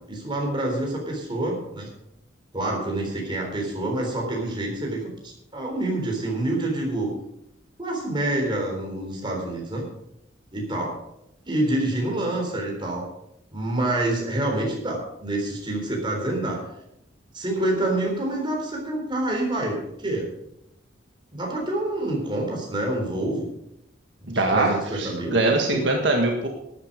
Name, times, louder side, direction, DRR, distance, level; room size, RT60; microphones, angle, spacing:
voice 1, 0.1-1.9 2.5-7.1 7.8-9.8 10.5-11.0 11.5-13.1 13.5-16.6 17.3-20.3 21.3-23.5 24.2-25.4 25.7-25.9, right 1 dB, 25° right, 0 dB, 3.7 m, -27 dB
voice 2, 24.3-26.5, right 2 dB, 65° right, 1 dB, 1.6 m, -22 dB
13.0 x 9.4 x 5.1 m, 0.82 s
head